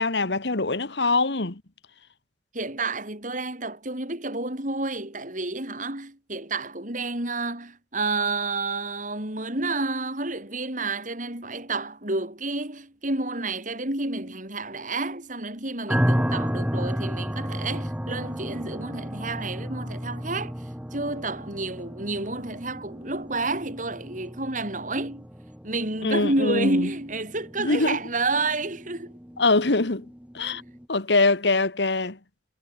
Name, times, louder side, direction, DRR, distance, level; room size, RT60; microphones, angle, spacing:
voice 1, 0.0-1.6 26.0-26.9 27.6-28.0 29.4-30.1 30.3-30.6 30.9-32.2, left 3 dB, 80° left, 1.8 m, -23 dB
voice 2, 2.5-20.5 20.9-25.3 25.6-29.2 30.5-30.6, right 2 dB, 45° right, 6.1 m, -30 dB
sound 1, 15.9-30.9, equal, 5° right, 1.7 m, -32 dB
head